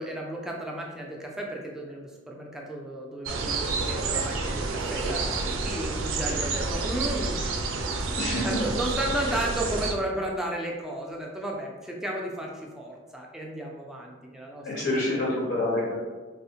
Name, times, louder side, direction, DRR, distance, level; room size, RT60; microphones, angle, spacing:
voice 1, 0.0-7.5 8.4-15.3, right 1 dB, 5° right, -2 dB, 0.3 m, -33 dB
sound 1, 3.2-9.9, right 3 dB, 90° right, 0.4 m, -29 dB
voice 2, 8.1-8.6 14.6-15.9, left 2 dB, 65° left, -4 dB, 0.6 m, -27 dB
3.3 x 2.0 x 2.7 m, 1.3 s
head